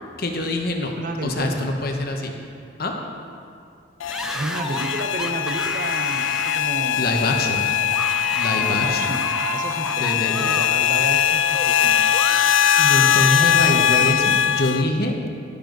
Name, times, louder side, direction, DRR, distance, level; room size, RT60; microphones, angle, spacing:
voice 1, 0.2-2.4 2.8-2.9 7.0-7.7 8.3-9.2 10.0-10.6 12.8-15.2, left 1 dB, 50° left, 2 dB, 1.1 m, -25 dB
voice 2, 1.0-1.8 4.3-7.2 8.6-12.1, right 2 dB, 40° right, 5 dB, 0.8 m, -31 dB
sound 1, 4.0-14.8, left 9 dB, 75° left, 0.4 m, -21 dB
sound 2, 4.1-10.7 11.0-14.2, right 1 dB, 5° right, 0.4 m, -32 dB
12.0 x 11.5 x 3.9 m, 2.4 s
head